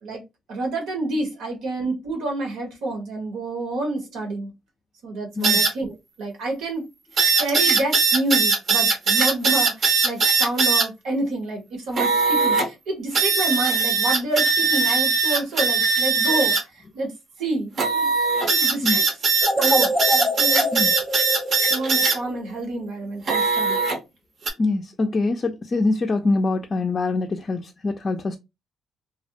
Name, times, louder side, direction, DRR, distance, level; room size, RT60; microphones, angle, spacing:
voice 1, 0.5-4.5 5.0-6.9 7.1-17.1 17.4-18.2 18.5-19.0 19.6-20.7 21.7-23.8, right 2 dB, 85° right, 1.1 m, -28 dB
sound 1, 5.4-5.7 7.2-10.9 12.0-12.7 13.1-16.6 17.8-22.2 23.3-24.0 24.5-24.6, right 4 dB, 55° right, 0.7 m, -20 dB
sound 2, 19.4-22.6, equal, 10° right, 0.6 m, -26 dB
voice 2, 24.6-28.4, left 3 dB, 35° left, 0.3 m, -24 dB
2.5 x 2.1 x 2.7 m
cardioid pair, 90°, 0 cm